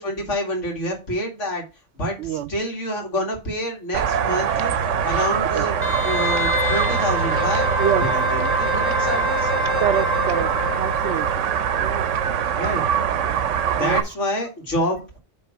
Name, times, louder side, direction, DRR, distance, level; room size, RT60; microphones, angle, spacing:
voice 1, 0.0-1.6 1.9-5.8 6.0-7.7 8.0-9.5 12.6-12.8 13.7-15.2, equal, 75° left, 2.6 m, -27 dB
voice 2, 2.2-2.5 5.5-5.7 7.8-8.1 8.8-9.0 9.8-12.2 12.5-13.0 13.3-14.0, right 9 dB, 70° right, 0.8 m, -28 dB
sound 1, 3.9-14.0, right 7 dB, 90° right, 1.1 m, -23 dB
Wind instrument woodwind instrument, 5.8-11.4 11.7-11.8, left 1 dB, 20° left, 0.4 m, -26 dB
8.5 x 3.5 x 6.0 m
omnidirectional pair, 1.3 m